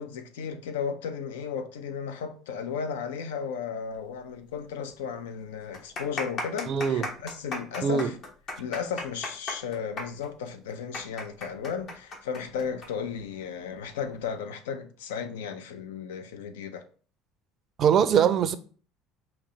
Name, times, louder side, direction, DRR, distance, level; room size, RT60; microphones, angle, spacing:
voice 1, 0.0-8.2 8.6-16.8, left 6 dB, 70° left, 0.5 m, -34 dB
sound 1, 4.5-4.6 4.9-5.0 5.6-12.9 13.2-13.3 14.0-14.3, left 2 dB, 45° left, 1.0 m, -35 dB
voice 2, 6.7-7.1 7.8-8.1 17.8-18.5, right 7 dB, 45° right, 0.4 m, -22 dB
5.0 x 3.0 x 3.1 m
figure-of-eight pair, 60°, 0 cm